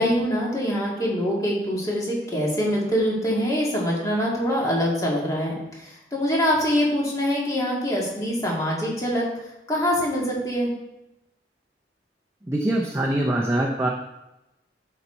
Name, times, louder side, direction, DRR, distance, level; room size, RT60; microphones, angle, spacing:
voice 1, 0.0-9.3 9.7-10.7, equal, 20° left, -3 dB, 2.0 m, -24 dB
voice 2, 12.5-13.9, right 1 dB, 15° right, -1 dB, 0.6 m, -23 dB
11.5 x 4.1 x 4.4 m, 0.95 s
head